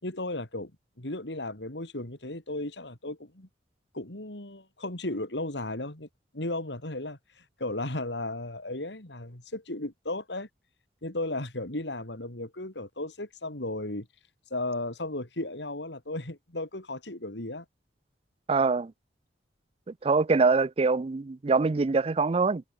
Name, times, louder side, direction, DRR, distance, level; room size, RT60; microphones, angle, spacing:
voice 1, 0.0-0.7 1.0-3.5 3.9-6.1 6.3-7.2 7.6-10.5 11.0-14.1 14.5-17.7, left 2 dB, 75° left, 3.7 m, -35 dB
voice 2, 18.5-18.9 19.9-22.6, right 4 dB, 35° right, 0.4 m, -24 dB
head